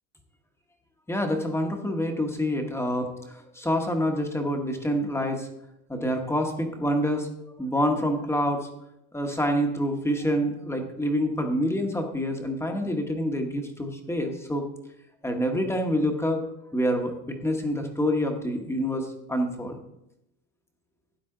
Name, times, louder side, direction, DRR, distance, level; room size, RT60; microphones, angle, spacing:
voice 1, 1.1-5.5 5.9-7.3 7.6-8.7 9.1-14.6 15.2-16.5 16.7-19.8, equal, 5° left, 3 dB, 1.0 m, -27 dB
12.5 x 9.1 x 3.7 m, 0.82 s
cardioid pair, 160°, 45 cm